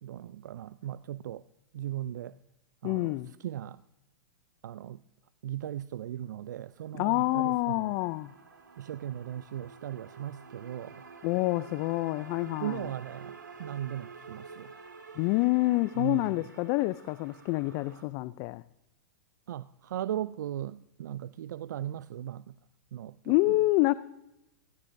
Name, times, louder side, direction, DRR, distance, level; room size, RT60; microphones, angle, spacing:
voice 1, 0.0-1.4 1.7-2.3 2.8-3.8 4.6-5.0 5.4-7.9 8.8-11.0 12.6-14.8 16.0-16.3 19.5-22.5 22.9-23.3, right 11 dB, 70° right, 0.4 m, -38 dB
voice 2, 2.8-3.3 6.9-8.3 11.2-12.9 15.2-18.6 23.3-23.9, left 20 dB, 40° left, 0.4 m, -27 dB
sound 1, 6.7-18.0, right 4 dB, 85° right, 2.0 m, -50 dB
20.5 x 15.5 x 2.6 m
hypercardioid pair, 110°, 10 cm